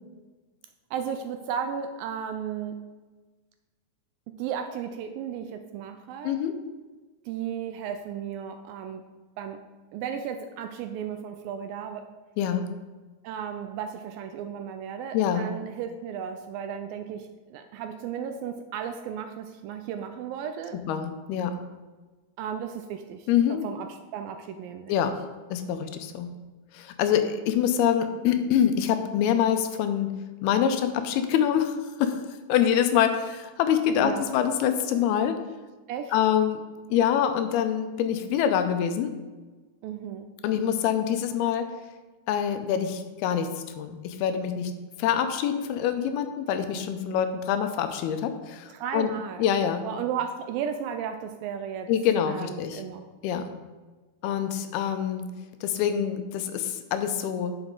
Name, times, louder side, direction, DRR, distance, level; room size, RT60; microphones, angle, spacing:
voice 1, 0.9-2.8 4.4-6.4 7.3-9.0 9.4-9.6 9.9-12.1 13.2-20.8 22.4-25.0 34.0-34.3 35.9-36.1 39.8-40.3 48.7-49.5 49.8-51.9 52.3-53.1, right 8 dB, 85° right, 7 dB, 2.1 m, -34 dB
voice 2, 6.2-6.6 12.4-12.7 15.1-15.5 20.9-21.6 23.3-23.7 24.9-25.2 25.5-26.4 26.7-30.1 30.4-32.2 32.5-35.4 36.1-36.6 36.9-39.1 40.4-41.7 42.3-49.1 49.4-49.9 51.9-52.8 53.2-53.5 54.2-55.3 55.6-57.6, left 9 dB, 85° left, 8 dB, 2.6 m, -25 dB
9.6 x 6.4 x 3.7 m, 1.3 s
omnidirectional pair, 4.5 m